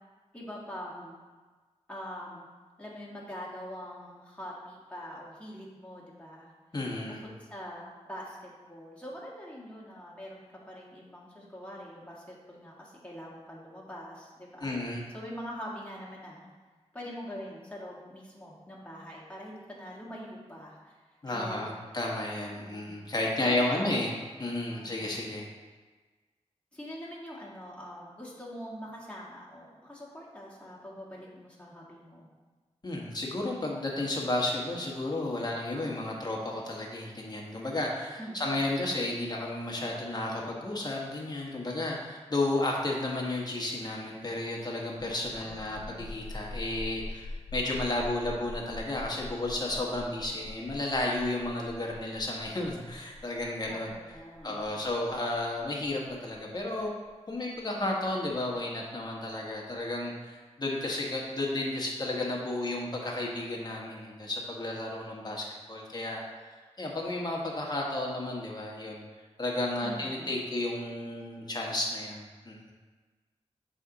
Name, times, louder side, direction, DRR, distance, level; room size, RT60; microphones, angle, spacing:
voice 1, 0.3-1.1 1.9-2.4 2.8-6.5 7.1-14.7 15.1-16.5 16.9-21.0 21.2-21.7 22.4-23.1 23.4-24.0 24.7-25.2 26.7-32.3 38.2-38.7 45.4-46.0 53.7-54.8 69.8-70.3, equal, 10° left, -6 dB, 1.7 m, -44 dB
voice 2, 6.7-7.2 14.6-15.0 21.2-24.1 24.4-25.5 32.8-53.9 54.4-56.9 57.3-66.2 66.8-69.0 69.4-72.7, left 2 dB, 35° left, -2 dB, 1.3 m, -32 dB
sound 1, 44.9-58.3, left 2 dB, 65° left, 0.7 m, -44 dB
6.9 x 4.2 x 3.9 m, 1.3 s
wide cardioid pair, 80°, 12 cm